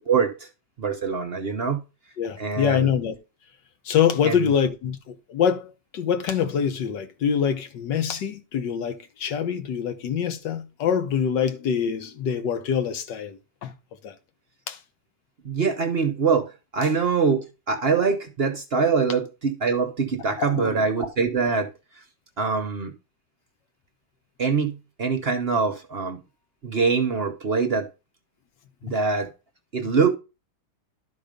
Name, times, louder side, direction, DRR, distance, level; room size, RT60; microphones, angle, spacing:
voice 1, 0.1-0.5 0.8-1.8 2.4-2.9 4.2-4.5 15.4-21.7 22.4-22.9 24.4-26.2 26.6-27.9 28.8-29.3 29.7-30.1, right 5 dB, 45° right, 0.8 m, -24 dB
voice 2, 2.2-3.2 3.8-13.7 14.0-14.1 14.7-14.8 20.4-20.9, left 8 dB, 85° left, 1.7 m, -25 dB
12.0 x 4.0 x 5.1 m
omnidirectional pair, 1.9 m